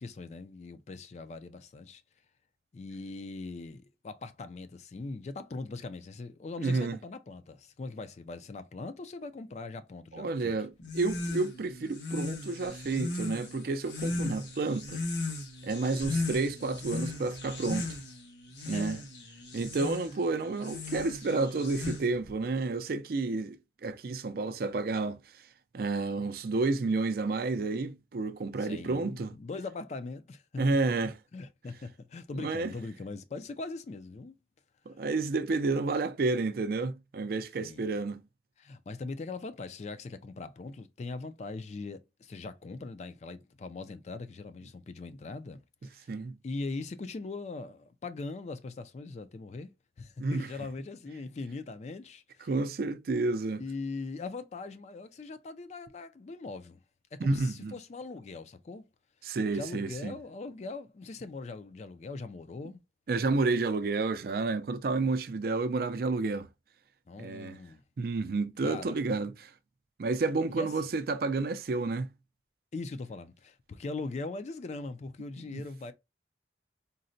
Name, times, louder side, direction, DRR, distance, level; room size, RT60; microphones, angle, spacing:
voice 1, 0.0-2.0 2.7-10.5 14.2-14.5 16.1-16.2 18.7-19.0 28.6-30.6 31.3-34.4 37.6-37.8 38.6-46.1 46.4-49.7 50.0-52.5 53.6-56.8 57.1-58.8 59.5-62.8 67.1-67.8 68.6-69.0 70.5-70.7 72.7-75.9, left 3 dB, 40° left, 0.3 m, -41 dB
voice 2, 6.6-7.0 10.1-15.0 15.6-17.9 18.7-19.0 19.5-23.6 23.8-25.2 25.7-29.3 30.6-31.1 32.4-32.7 34.9-38.2 46.1-46.4 50.2-50.5 52.5-53.6 57.2-57.7 59.2-60.1 63.1-66.5 67.2-67.6 68.0-69.5 70.0-72.1 75.5-75.6, right 3 dB, 55° right, 0.4 m, -30 dB
sound 1, 10.8-22.3, left 2 dB, 85° left, 1.1 m, -37 dB
3.8 x 2.1 x 2.5 m
head